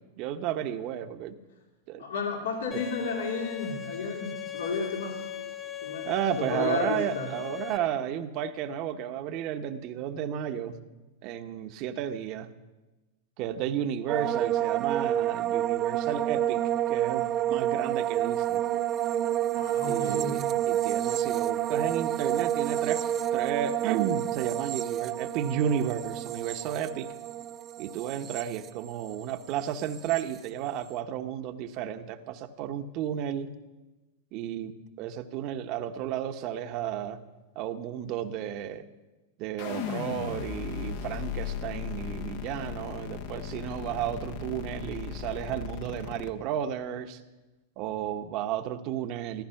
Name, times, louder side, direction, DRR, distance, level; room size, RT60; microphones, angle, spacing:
voice 1, 0.0-1.3 1.9-2.0 2.7-2.8 6.0-10.8 11.2-12.5 13.4-16.6 16.9-18.6 19.8-23.0 23.3-27.1 27.8-33.5 34.3-37.2 37.5-38.8 39.4-47.2 47.8-49.4, right 10 dB, 50° right, 9 dB, 1.2 m, -33 dB
voice 2, 2.0-5.3 5.8-6.1 6.4-7.3 19.5-20.4, left 4 dB, 80° left, 1 dB, 2.9 m, -33 dB
Bowed string instrument, 2.7-7.8, left 10 dB, 20° left, 1.4 m, -39 dB
sound 1, 14.1-29.3 29.6-30.2, right 11 dB, 30° right, 0.4 m, -29 dB
sound 2, 39.6-46.3, left 7 dB, 60° left, 1.4 m, -36 dB
14.5 x 14.0 x 5.9 m, 1.1 s
hypercardioid pair, 115°, 0 cm